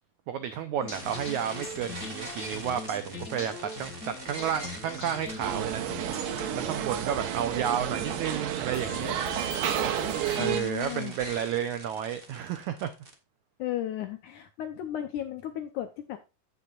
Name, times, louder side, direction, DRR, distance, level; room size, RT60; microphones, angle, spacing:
voice 1, 0.3-5.8 6.5-9.1 10.3-12.9, right 9 dB, 85° right, 1.6 m, -31 dB
sound 1, 0.8-10.5, left 3 dB, 30° left, 2.1 m, -41 dB
sound 2, 0.9-13.1, right 2 dB, 35° right, 0.9 m, -44 dB
sound 3, 5.4-10.6, right 10 dB, 70° right, 2.5 m, -31 dB
voice 2, 10.4-11.1 13.6-16.2, left 12 dB, 75° left, 1.8 m, -34 dB
16.0 x 5.7 x 2.5 m
omnidirectional pair, 4.5 m